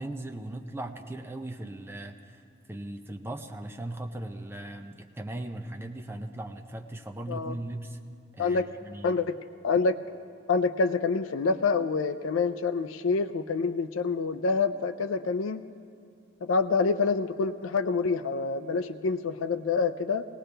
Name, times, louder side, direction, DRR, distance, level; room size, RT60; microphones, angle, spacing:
voice 1, 0.0-2.4 2.7-8.0 8.3-9.2, right 1 dB, 10° right, 5 dB, 0.6 m, -38 dB
voice 2, 9.0-9.4 9.6-10.0 10.5-15.6 16.4-20.3, left 4 dB, 90° left, 9 dB, 0.4 m, -27 dB
19.0 x 17.5 x 3.4 m, 2.3 s
head